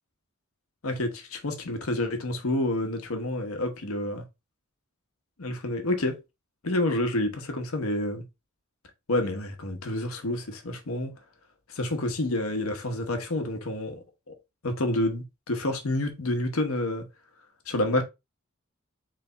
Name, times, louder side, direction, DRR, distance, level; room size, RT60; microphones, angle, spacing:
voice 1, 0.8-4.2 5.4-6.2 6.6-8.2 9.1-11.1 11.7-14.3 14.6-17.1 17.7-18.0, left 1 dB, 85° left, 1.0 m, -28 dB
4.0 x 3.3 x 3.3 m
head